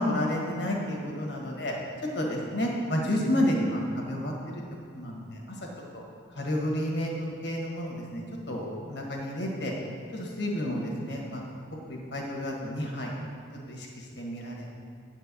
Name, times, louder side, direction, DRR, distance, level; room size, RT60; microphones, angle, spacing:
voice 1, 0.0-1.7 2.1-4.3 4.9-5.2 6.4-7.1 7.4-9.7 10.1-11.4 11.9-13.1 13.7-14.7, left 1 dB, 60° left, -1 dB, 1.5 m, -30 dB
9.1 x 4.4 x 6.8 m, 2.3 s
head